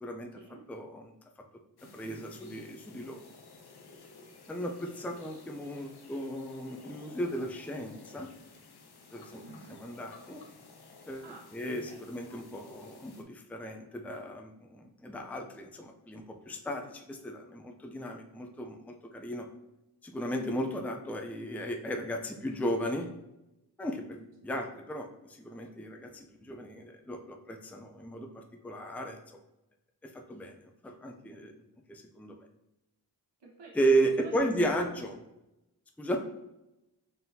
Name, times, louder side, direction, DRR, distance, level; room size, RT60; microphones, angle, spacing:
voice 1, 0.0-0.3 0.7-1.1 1.8-3.2 4.5-8.3 9.1-9.4 9.7-10.4 11.1-11.2 11.5-19.5 20.0-23.1 23.8-29.4 30.0-30.5 30.8-31.5 31.9-32.5 33.7-35.1 36.0-36.2, right 1 dB, 5° left, 3 dB, 0.5 m, -35 dB
sound 1, 1.8-13.2, left 3 dB, 65° left, 0.8 m, -54 dB
voice 2, 1.8-2.1 9.4-9.7 11.2-11.5 11.9-12.1 20.4-20.7 33.4-34.3 34.6-34.9, right 3 dB, 80° right, -2 dB, 1.1 m, -51 dB
4.0 x 3.7 x 2.7 m, 0.94 s
cardioid pair, 50°, 41 cm